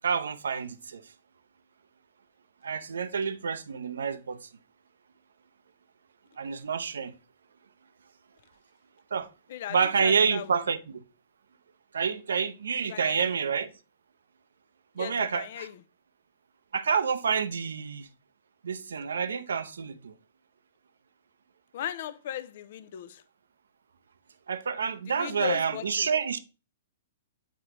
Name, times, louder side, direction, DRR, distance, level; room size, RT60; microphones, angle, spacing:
voice 1, 0.0-1.0 2.6-4.5 6.4-7.1 9.1-9.3 9.7-11.0 11.9-13.7 15.0-15.7 16.7-18.1 18.6-20.1 24.5-26.4, right 6 dB, 70° right, 0.5 m, -28 dB
voice 2, 9.5-10.6 12.9-13.3 15.0-15.8 21.7-23.2 25.0-26.1, left 10 dB, 55° left, 0.5 m, -37 dB
8.1 x 4.7 x 3.0 m
figure-of-eight pair, 110°, 0 cm